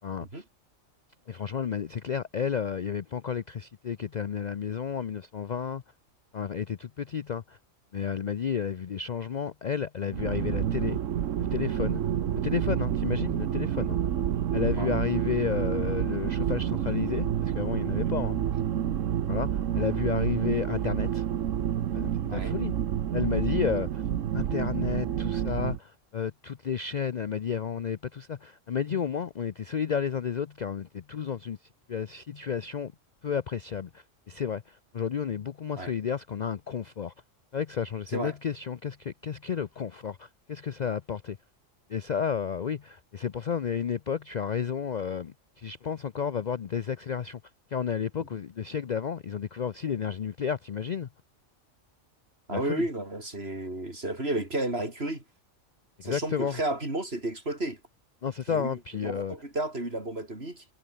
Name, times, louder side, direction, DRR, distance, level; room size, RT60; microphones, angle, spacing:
voice 1, 0.0-0.4 1.3-5.8 6.3-7.6 7.9-11.0 11.5-12.0 12.4-14.0 14.5-18.4 19.3-21.3 21.9-22.7 23.1-24.0 24.3-31.6 31.9-32.9 33.2-37.1 37.5-41.4 41.9-47.4 47.7-51.1 52.5-52.9 56.0-56.6 58.2-59.3, left 7 dB, 50° left, 0.6 m, -32 dB
sound 1, 10.1-25.8, right 10 dB, 80° right, 1.2 m, -29 dB
voice 2, 52.5-55.2 56.0-57.8 58.5-60.7, right 2 dB, 55° right, 5.8 m, -33 dB
omnidirectional pair, 1.3 m